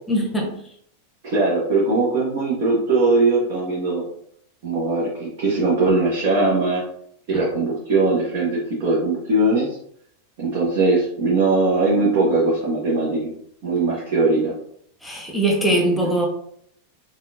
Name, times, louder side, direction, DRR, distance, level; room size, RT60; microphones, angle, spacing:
voice 1, 0.1-0.5 15.0-16.3, right 1 dB, 5° left, 0 dB, 1.1 m, -21 dB
voice 2, 1.2-4.0 4.6-6.8 7.3-9.7 10.4-13.3 13.6-14.5, right 3 dB, 45° right, -6 dB, 1.2 m, -20 dB
5.5 x 2.5 x 2.7 m, 0.68 s
figure-of-eight pair, 90°, 0 cm